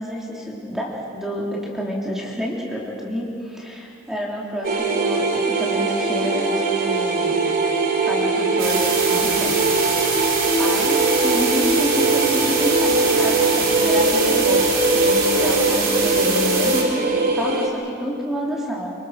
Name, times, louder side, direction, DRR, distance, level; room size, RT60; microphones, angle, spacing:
voice 1, 0.0-7.4 8.1-9.6 9.9-10.3 10.6-14.6 14.9-18.9, equal, ahead, -4 dB, 3.3 m, -29 dB
sound 1, 4.6-17.7, right 3 dB, 45° right, 3.0 m, -21 dB
sound 2, 8.6-16.8, right 5 dB, 65° right, 4.5 m, -25 dB
25.0 x 24.0 x 6.5 m, 2.4 s
head